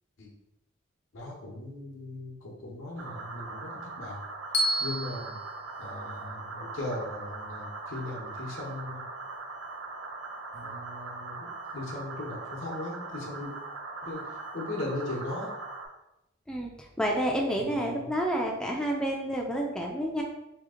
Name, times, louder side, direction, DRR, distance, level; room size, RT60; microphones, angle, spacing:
voice 1, 1.1-3.7 4.0-4.2 4.8-5.4 5.8-9.0 10.5-13.5 14.0-14.2 14.5-15.6 17.5-18.1, left 2 dB, 80° left, -1 dB, 0.9 m, -38 dB
sound 1, 3.0-15.9, right 3 dB, 80° right, 0.5 m, -40 dB
Bell, 4.5-6.7, equal, 55° left, 0.6 m, -32 dB
voice 2, 16.5-20.2, equal, 5° left, 0 dB, 0.3 m, -29 dB
2.9 x 2.4 x 3.7 m, 0.90 s
head